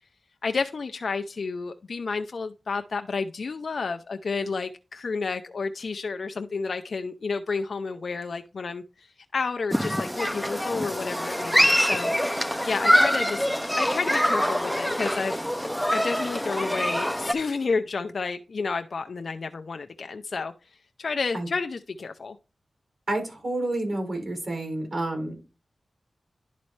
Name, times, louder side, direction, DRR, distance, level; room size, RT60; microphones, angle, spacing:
voice 1, 0.4-9.1 9.3-13.5 13.8-15.5 15.9-20.5 21.0-22.4, left 4 dB, 70° left, 0.6 m, -31 dB
Human group actions, 9.7-17.3, equal, 5° left, 0.6 m, -24 dB
voice 2, 23.1-25.4, right 2 dB, 60° right, 4.9 m, -29 dB
11.0 x 4.1 x 3.2 m
cardioid pair, 55°, 0 cm